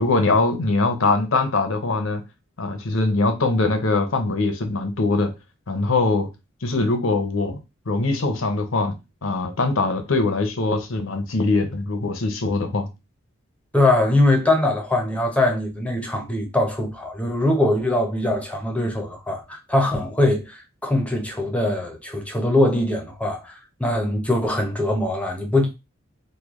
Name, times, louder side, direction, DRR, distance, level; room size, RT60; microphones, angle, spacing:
voice 1, 0.0-2.2 2.6-5.3 5.7-6.3 6.6-7.6 7.9-9.0 9.2-12.9, left 3 dB, 70° left, 0.8 m, -22 dB
voice 2, 13.7-25.7, left 1 dB, 5° left, 0.7 m, -22 dB
3.1 x 2.3 x 3.5 m
head